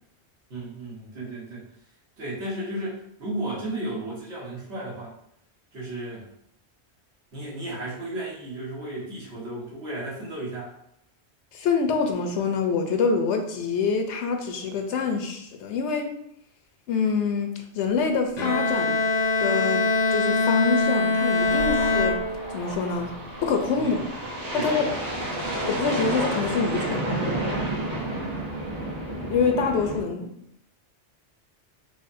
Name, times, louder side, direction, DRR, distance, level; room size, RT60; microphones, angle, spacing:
voice 1, 0.5-1.7 2.2-5.1 5.7-6.3 7.3-10.7 23.8-24.0 24.5-25.0 27.9-28.3, right 1 dB, 75° right, -7 dB, 1.6 m, -34 dB
voice 2, 11.5-16.1 16.9-19.0 19.4-22.2 22.5-23.1 23.4-24.1 24.5-24.9 25.7-27.2 29.1-30.3, left 5 dB, 90° left, 4 dB, 0.9 m, -26 dB
Bowed string instrument, 18.4-22.8, left 3 dB, 50° left, 0.6 m, -23 dB
sound 1, 21.4-30.0, right 1 dB, 40° right, 0.7 m, -31 dB
4.8 x 2.2 x 2.6 m, 0.73 s
omnidirectional pair, 1.1 m